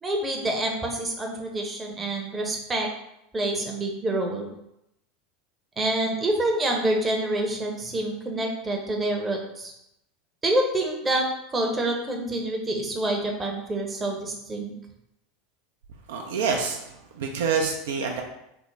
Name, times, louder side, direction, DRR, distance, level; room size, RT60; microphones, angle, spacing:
voice 1, 0.0-2.9 3.3-4.5 5.8-9.7 10.4-14.7, right 1 dB, 20° right, 1 dB, 0.7 m, -27 dB
voice 2, 16.1-16.8 17.1-18.2, right 5 dB, 75° right, 2 dB, 0.4 m, -26 dB
3.4 x 2.0 x 3.2 m, 0.82 s
hypercardioid pair, 85°, 0 cm